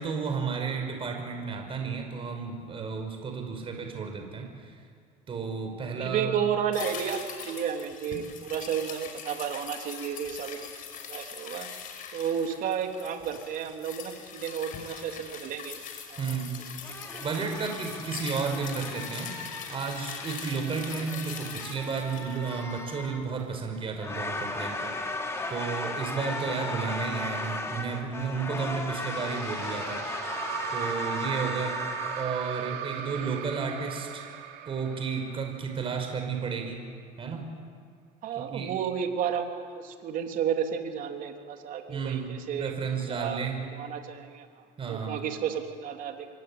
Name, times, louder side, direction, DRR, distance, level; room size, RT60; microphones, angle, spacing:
voice 1, 0.0-4.7 5.3-6.4 16.2-16.5 17.2-19.3 19.7-24.9 25.5-30.0 30.7-31.8 32.2-34.3 34.7-36.8 37.2-37.4 38.3-38.7 41.9-42.3 42.6-43.6 44.8-45.2, right 5 dB, 30° right, 3 dB, 5.6 m, -32 dB
voice 2, 6.0-10.6 11.0-11.7 12.1-15.8 16.1-16.3 16.9-17.3 38.2-42.7 43.1-44.5 44.9-46.3, right 8 dB, 55° right, 4 dB, 3.4 m, -32 dB
sound 1, 6.7-23.2 23.5-23.6, left 7 dB, 55° left, 5.5 m, -41 dB
sound 2, 16.8-32.4, left 2 dB, 15° left, 4.2 m, -36 dB
sound 3, 29.0-36.3, right 10 dB, 70° right, 3.2 m, -38 dB
27.0 x 23.5 x 8.9 m, 2.1 s
supercardioid pair, 105°, 17 cm